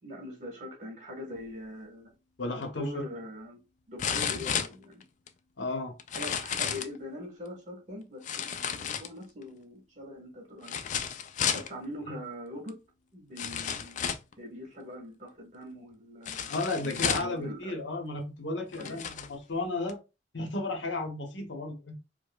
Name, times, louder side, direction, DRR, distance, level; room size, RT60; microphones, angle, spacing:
voice 1, 0.0-2.1 2.5-3.6 3.9-5.0 6.1-10.8 11.5-12.8 13.1-14.1 14.4-17.8 18.8-19.0, left 1 dB, 40° right, 1.4 m, -42 dB
voice 2, 2.4-3.0 5.6-5.9 12.1-12.2 16.5-20.0 20.3-22.0, left 2 dB, 75° left, 0.8 m, -33 dB
sound 1, 2.6-2.7 4.0-5.3 6.0-7.0 8.2-9.4 10.6-11.7 12.7-12.8 13.4-14.3 16.3-17.4 18.2-18.3 18.7-19.3 19.9-20.0, left 8 dB, 40° left, 0.3 m, -32 dB
4.7 x 2.0 x 2.2 m
head